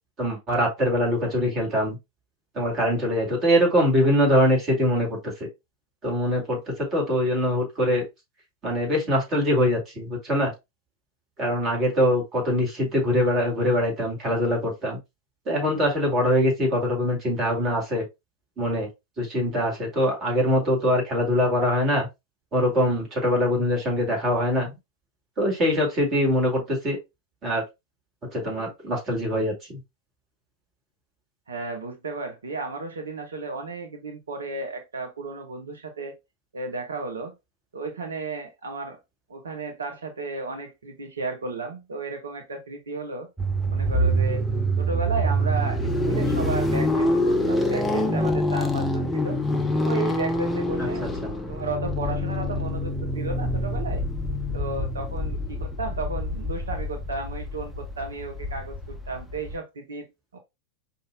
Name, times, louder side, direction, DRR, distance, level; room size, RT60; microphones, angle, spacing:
voice 1, 0.2-2.0 2.5-5.2 6.0-8.0 8.6-10.5 11.4-15.0 15.5-18.0 18.6-18.9 19.2-22.1 22.5-24.7 25.4-27.0 27.4-27.6 28.3-29.8 50.8-50.9 51.2-51.3, equal, 30° right, 2.1 m, -23 dB
voice 2, 31.5-36.1 36.5-37.3 37.7-39.0 39.3-43.3 43.7-44.4 44.8-49.4 49.8-51.0 51.5-54.0 54.5-60.4, right 3 dB, 70° right, 0.8 m, -33 dB
sound 1, 43.4-59.6, equal, 5° left, 0.6 m, -26 dB
5.2 x 2.7 x 2.2 m
figure-of-eight pair, 90°, 0 cm